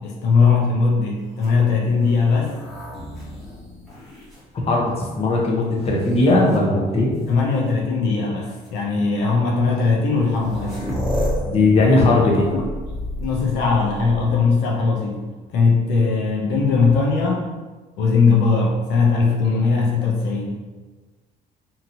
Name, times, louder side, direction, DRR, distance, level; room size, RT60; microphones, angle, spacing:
voice 1, 0.0-2.5 7.3-10.9 11.9-12.6 13.2-17.5 18.0-20.6, left 4 dB, 90° left, -1 dB, 0.6 m, -20 dB
sound 1, 1.3-5.2 5.8-6.6 7.7-7.8 8.5-8.7 9.8-9.9 10.1-14.6 16.5-17.2, left 1 dB, ahead, 1.1 m, -31 dB
voice 2, 4.5-7.1 11.5-12.5, left 2 dB, 35° left, -2 dB, 0.8 m, -18 dB
2.9 x 2.7 x 2.6 m, 1.3 s
cardioid pair, 110°, 17 cm